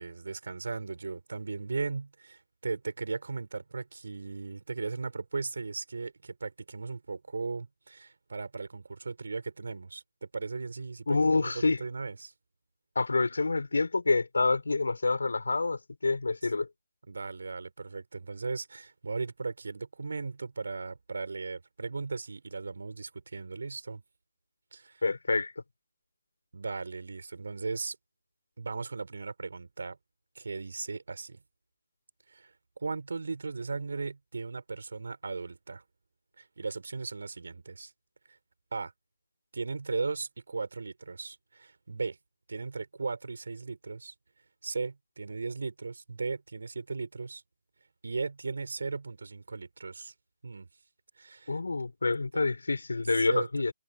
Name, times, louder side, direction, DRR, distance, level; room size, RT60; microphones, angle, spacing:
voice 1, 0.0-12.3 16.4-16.5 17.1-24.0 24.7-25.0 26.5-28.0 28.6-30.0 30.3-31.4 32.3-35.8 36.4-37.9 38.7-38.9 39.5-42.2 42.5-44.1 44.6-47.4 48.0-50.1 50.4-50.7 51.2-51.6 52.3-52.4 53.2-53.5, right 4 dB, 60° right, 4.3 m, -37 dB
voice 2, 11.1-11.8 12.9-16.7 25.0-25.5 51.5-53.7, left 3 dB, 65° left, 4.4 m, -27 dB
figure-of-eight pair, 145°, 0 cm